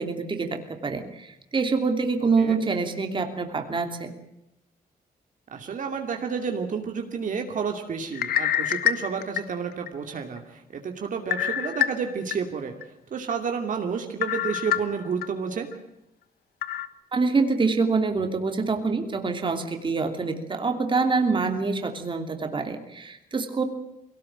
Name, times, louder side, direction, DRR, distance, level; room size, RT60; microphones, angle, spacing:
voice 1, 0.0-4.1 17.1-23.6, right 4 dB, 30° right, 5 dB, 3.0 m, -26 dB
voice 2, 5.5-12.7 13.1-15.7, right 6 dB, 55° right, 4 dB, 2.7 m, -30 dB
sound 1, 8.1-9.9 10.4-10.5 11.3-12.4 12.8-12.9 14.2-15.3 15.7-15.8 16.6-16.9, left 11 dB, 80° left, 1.2 m, -26 dB
22.0 x 18.0 x 8.9 m, 0.85 s
cardioid pair, 105°, 16 cm